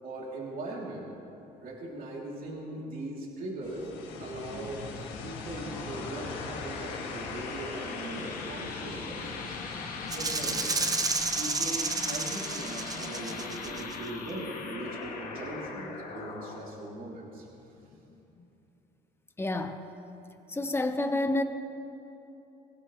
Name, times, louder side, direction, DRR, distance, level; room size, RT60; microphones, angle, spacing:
voice 1, 0.0-1.1 1.6-9.6 10.1-10.8 11.3-17.5, right 2 dB, 55° right, -3 dB, 3.2 m, -40 dB
sound 1, 3.6-14.3, left 4 dB, 90° left, 1.9 m, -43 dB
sound 2, 5.3-18.5, left 4 dB, 55° left, 2.2 m, -40 dB
Rattle (instrument), 10.1-13.9, right 4 dB, 20° right, 0.9 m, -31 dB
voice 2, 19.4-19.8 20.5-21.4, left 2 dB, 15° left, 7 dB, 1.1 m, -29 dB
24.0 x 16.5 x 3.2 m, 3.0 s
cardioid pair, 110°, 17 cm